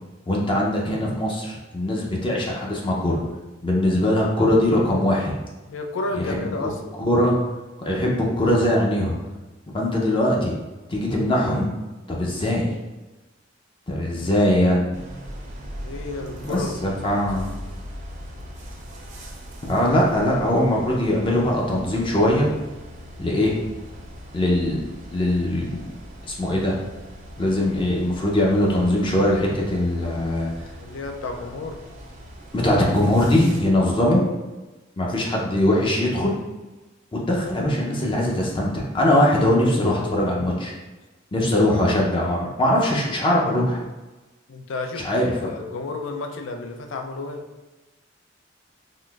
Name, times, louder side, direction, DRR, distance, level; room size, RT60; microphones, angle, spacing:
voice 1, 0.3-3.2 3.6-5.3 6.1-6.7 7.0-7.4 7.8-9.2 9.7-10.5 10.9-11.7 12.1-12.7 13.9-15.0 16.4-17.5 19.6-22.5 23.2-23.6 24.3-24.8 25.1-25.8 26.4-26.8 27.4-30.5 32.5-34.2 35.0-36.4 37.1-40.7 41.3-43.8 45.0-45.5, left 1 dB, 25° left, -3 dB, 0.5 m, -21 dB
voice 2, 5.7-6.9 15.8-17.6 30.8-31.8 44.5-47.5, left 3 dB, 80° left, 4 dB, 0.4 m, -32 dB
sound 1, 14.9-33.6, equal, 40° right, 0.5 m, -40 dB
3.7 x 2.5 x 2.3 m, 1.1 s
head